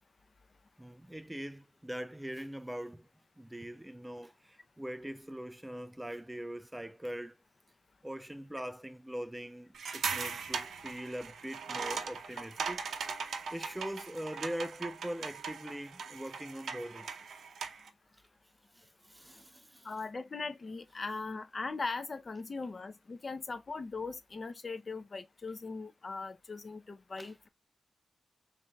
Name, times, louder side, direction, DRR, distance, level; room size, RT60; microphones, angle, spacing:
voice 1, 0.8-3.1 3.4-7.3 8.0-13.2 13.5-17.2 18.1-18.2 18.7-19.9 27.2-27.3, equal, 10° right, 0.3 m, -42 dB
sound 1, 9.7-17.9, right 5 dB, 80° right, 0.6 m, -39 dB
voice 2, 19.8-27.5, left 4 dB, 40° left, 0.6 m, -40 dB
5.3 x 3.7 x 2.3 m
wide cardioid pair, 100°, 0 cm